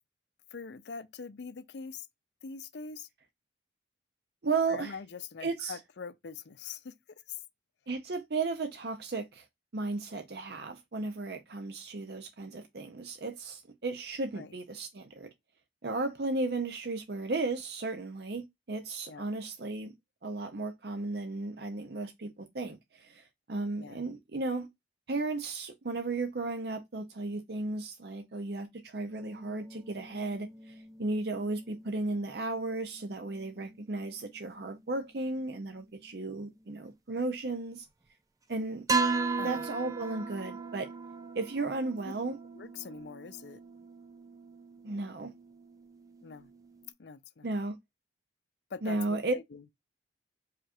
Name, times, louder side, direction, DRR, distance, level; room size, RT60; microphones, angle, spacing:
voice 1, 0.5-2.1 2.4-3.1 4.7-7.0 7.3-7.4 14.3-14.5 19.1-19.2 23.8-24.0 39.4-39.7 42.6-43.6 46.2-46.5 47.0-47.5 48.7-49.6, left 5 dB, 70° left, 0.5 m, -43 dB
voice 2, 4.4-5.0 5.4-5.8 7.9-9.4 9.7-15.3 15.8-19.9 20.2-24.7 25.1-37.8 38.5-38.9 39.4-40.9 41.3-42.4 44.8-45.3 47.4-47.8 48.8-49.3, right 3 dB, 60° right, 0.7 m, -35 dB
sound 1, 29.1-36.0 36.6-36.7 38.9-46.9, right 4 dB, 20° right, 0.5 m, -38 dB
5.0 x 2.4 x 4.3 m
head